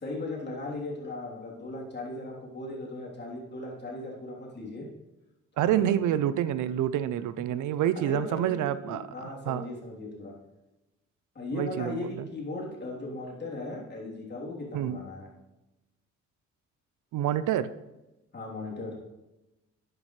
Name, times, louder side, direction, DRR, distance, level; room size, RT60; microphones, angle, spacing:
voice 1, 0.0-4.9 5.6-5.9 8.0-10.3 11.4-15.3 18.3-19.0, left 2 dB, 35° left, -3 dB, 3.4 m, -37 dB
voice 2, 5.6-9.7 11.5-12.0 14.7-15.0 17.1-17.7, right 11 dB, 80° right, 14 dB, 0.6 m, -27 dB
11.5 x 9.7 x 3.2 m, 1.0 s
cardioid pair, 90°, 30 cm